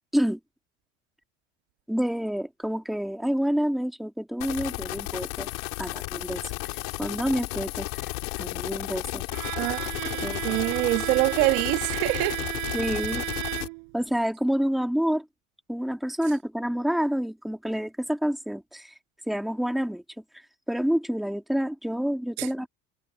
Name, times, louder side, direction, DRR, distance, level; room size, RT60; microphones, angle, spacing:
voice 1, 1.9-5.5 5.8-6.4 7.0-8.1 8.4-9.3 10.2-10.4 12.7-13.2 13.9-15.3 15.7-18.9 19.3-20.0 20.7-22.7, equal, ahead, 2.0 m, -28 dB
sound 1, 4.4-13.7, left 28 dB, 70° left, 4.1 m, -33 dB
Bowed string instrument, 9.3-14.0, right 37 dB, 60° right, 4.5 m, -33 dB
voice 2, 9.5-12.4 22.4-22.5, right 22 dB, 80° right, 1.6 m, -26 dB
cardioid pair, 175°, 31 cm